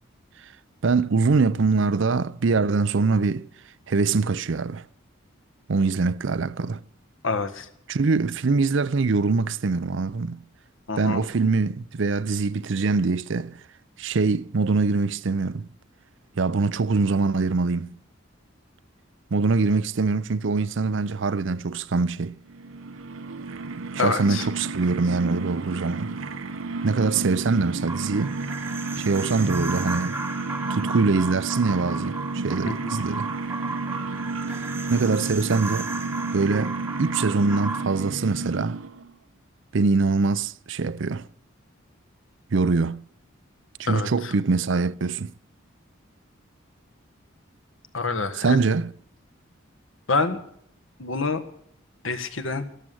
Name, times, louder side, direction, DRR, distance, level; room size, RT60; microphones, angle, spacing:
voice 1, 0.8-3.5 3.9-4.8 5.7-6.8 7.9-10.4 11.0-13.6 14.0-15.7 16.4-17.9 19.3-22.4 24.0-26.1 26.8-28.4 29.0-30.2 30.7-33.3 34.5-34.6 34.9-35.9 36.3-38.8 39.7-41.2 42.5-43.0 43.8-45.3 48.4-48.9, right 4 dB, 65° right, 0.5 m, -23 dB
voice 2, 7.2-7.7 10.9-11.2 24.0-24.5 32.6-33.0 43.9-44.3 47.9-48.6 50.1-50.4 51.0-51.4 52.0-52.6, left 3 dB, 75° left, 1.6 m, -27 dB
sound 1, 22.5-39.1, right 3 dB, 80° right, 1.0 m, -32 dB
sound 2, 27.9-37.8, right 3 dB, 10° right, 1.2 m, -35 dB
13.5 x 13.0 x 7.8 m
head